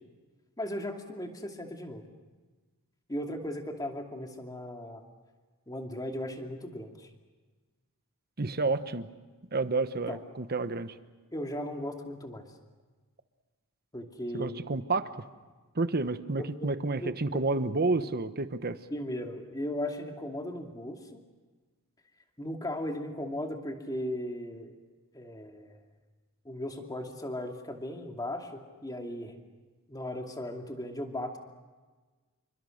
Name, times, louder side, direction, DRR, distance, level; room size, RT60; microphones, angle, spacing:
voice 1, 0.6-2.0 3.1-5.0 5.7-7.1 10.1-10.2 11.3-12.5 13.9-14.6 16.4-16.7 17.0-17.4 18.9-21.0 22.4-24.7 25.1-25.8 26.4-29.4 29.9-31.4, left 1 dB, 15° left, 3 dB, 2.5 m, -37 dB
voice 2, 8.4-9.1 9.5-11.0 14.3-15.1 15.7-18.8, right 3 dB, 45° right, 11 dB, 1.1 m, -30 dB
28.0 x 24.5 x 6.6 m, 1.3 s
head